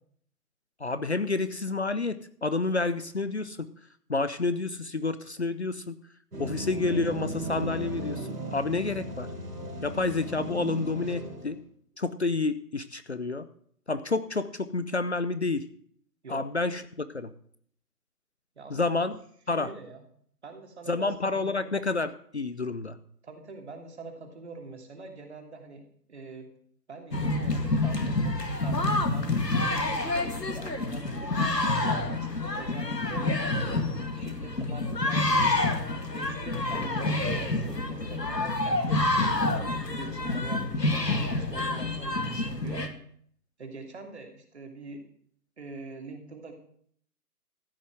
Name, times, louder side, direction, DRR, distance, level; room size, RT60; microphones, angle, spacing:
voice 1, 0.8-3.7 4.1-6.0 6.4-9.3 9.8-11.6 12.0-13.5 13.9-15.7 16.3-17.3 18.7-19.2 19.5-19.7 20.9-23.0, left 3 dB, 45° left, 12 dB, 0.7 m, -29 dB
sound 1, 6.3-11.6, right 1 dB, 75° right, 4.6 m, -36 dB
voice 2, 18.6-18.9 19.6-20.0 20.4-21.1 21.4-21.7 23.2-26.5 26.9-33.2 33.7-35.5 36.1-42.8 43.6-45.0 45.6-46.5, right 3 dB, 40° right, 3 dB, 2.9 m, -44 dB
sound 2, 27.1-42.9, left 2 dB, 85° left, 2.2 m, -28 dB
14.5 x 6.9 x 7.8 m, 0.62 s
figure-of-eight pair, 155°, 48 cm